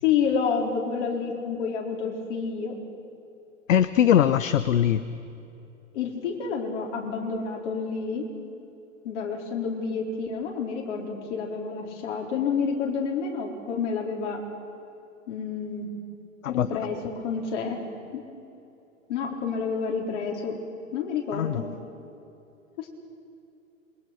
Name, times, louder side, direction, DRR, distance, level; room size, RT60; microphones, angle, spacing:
voice 1, 0.0-2.8 5.9-8.2 9.0-14.4 15.3-15.9 16.5-17.0 17.2-17.8 18.1-18.2 19.1-20.6 20.9-21.6 22.8-22.9, left 6 dB, 55° left, 0 dB, 4.3 m, -29 dB
voice 2, 3.7-5.0 16.4-16.7 21.3-21.6, left 10 dB, 75° left, 13 dB, 0.9 m, -21 dB
27.0 x 22.0 x 6.0 m, 2.7 s
hypercardioid pair, 105°, 40 cm